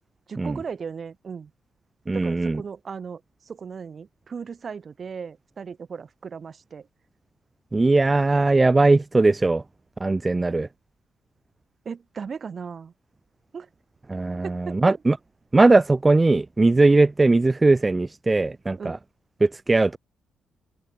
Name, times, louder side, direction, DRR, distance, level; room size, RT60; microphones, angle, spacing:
voice 1, 0.3-1.5 2.1-6.9 11.8-12.9 13.5-13.7 14.4-15.0 18.8-19.0, right 6 dB, 45° right, 8.0 m, -36 dB
voice 2, 2.1-2.6 7.7-9.6 10.0-10.7 14.1-15.2 15.5-19.0 19.4-20.0, right 3 dB, 20° right, 0.7 m, -19 dB
open air
cardioid pair, 80°, 0 cm